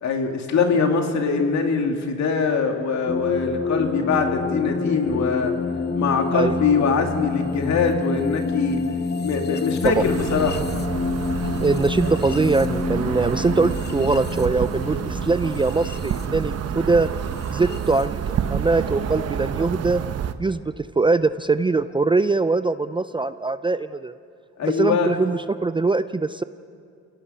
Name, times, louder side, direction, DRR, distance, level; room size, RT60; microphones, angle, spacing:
voice 1, 0.0-5.5 5.9-8.8 9.2-10.6 24.6-25.1, left 5 dB, 65° left, 4 dB, 2.4 m, -22 dB
sound 1, 3.1-18.1, left 4 dB, 35° left, 1.0 m, -28 dB
sound 2, 9.8-20.3, right 8 dB, 55° right, 0.9 m, -28 dB
voice 2, 11.6-17.1 17.5-20.0 20.4-20.6 21.0-24.1 24.6-26.4, right 3 dB, 15° right, 13 dB, 0.4 m, -22 dB
27.0 x 17.5 x 5.6 m, 2.3 s
cardioid pair, 90°, 30 cm